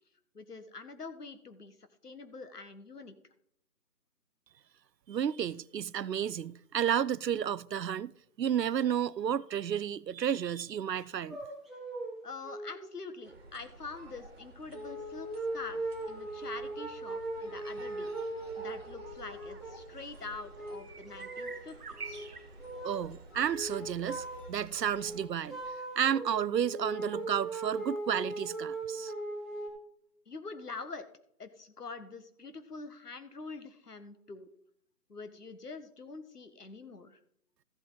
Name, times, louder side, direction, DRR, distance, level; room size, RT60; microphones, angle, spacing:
voice 1, 0.3-1.8 2.0-3.2 12.2-18.1 18.6-21.8 22.0-22.3 30.3-31.0 31.4-34.5 35.1-37.2, left 4 dB, 70° left, 1.6 m, -45 dB
voice 2, 5.1-8.1 8.4-11.4 22.8-25.6 26.0-29.1, right 9 dB, 80° right, 0.6 m, -32 dB
sound 1, 11.3-12.2 12.4-12.9 13.7-13.8 14.7-19.9 20.3-21.6 21.9-22.3 22.6-23.0 23.3-24.5 24.7-29.7, right 2 dB, ahead, 0.8 m, -39 dB
sound 2, 13.2-25.3, right 2 dB, 40° right, 1.6 m, -52 dB
sound 3, 19.1-25.7, right 4 dB, 65° right, 1.4 m, -50 dB
14.5 x 7.9 x 3.9 m
figure-of-eight pair, 180°, 49 cm